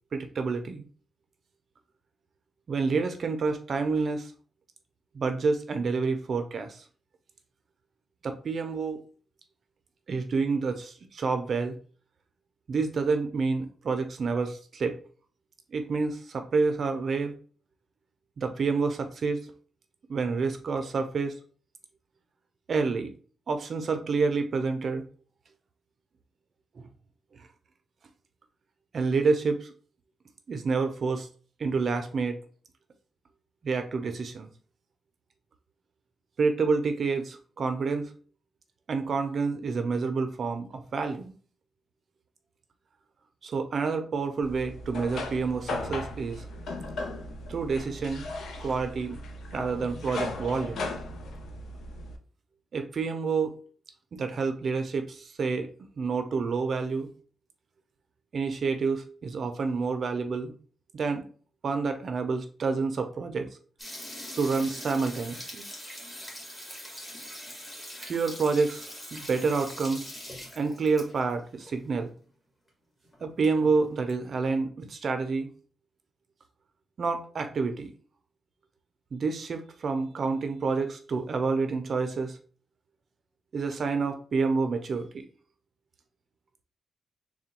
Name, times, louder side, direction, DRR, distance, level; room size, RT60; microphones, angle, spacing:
voice 1, 0.1-0.8 2.7-4.3 5.1-6.8 8.2-9.0 10.1-11.7 12.7-15.0 15.7-17.3 18.4-19.5 20.1-21.4 22.7-23.1 23.5-25.0 26.8-26.9 27.3-27.5 28.9-29.7 30.5-31.3 31.6-32.4 33.6-34.5 36.4-38.1 38.9-41.3 43.4-46.5 47.5-48.2 48.6-49.2 49.5-50.9 52.7-53.6 54.1-55.7 56.0-57.1 58.3-60.5 60.9-61.2 61.6-63.5 64.4-65.7 68.0-68.8 69.1-70.0 70.6-72.1 73.2-75.5 77.0-77.9 79.1-82.4 83.5-85.3, right 4 dB, 55° right, 7 dB, 0.5 m, -28 dB
sound 1, 44.4-52.2, left 2 dB, 75° left, 0.6 m, -37 dB
sound 2, 63.8-71.3 71.6-71.7 72.0-72.1 72.7-72.8 73.0-74.1, equal, 20° left, 1.6 m, -42 dB
3.6 x 2.2 x 4.3 m, 0.42 s
cardioid pair, 100°, 0 cm